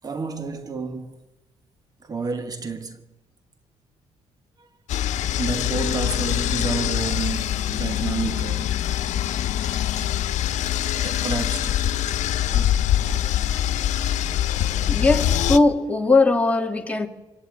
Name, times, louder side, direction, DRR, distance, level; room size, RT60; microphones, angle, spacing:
voice 1, 0.0-1.2 2.0-3.1 4.6-4.7 5.3-8.9 9.9-10.1 11.0-12.0 12.4-12.9, right 4 dB, 30° right, 1.3 m, -30 dB
sound 1, 4.9-15.6, left 11 dB, 80° left, 1.3 m, -24 dB
voice 2, 14.9-17.1, left 3 dB, 10° left, 2.4 m, -19 dB
26.5 x 23.0 x 8.7 m
cardioid pair, 135°, 12 cm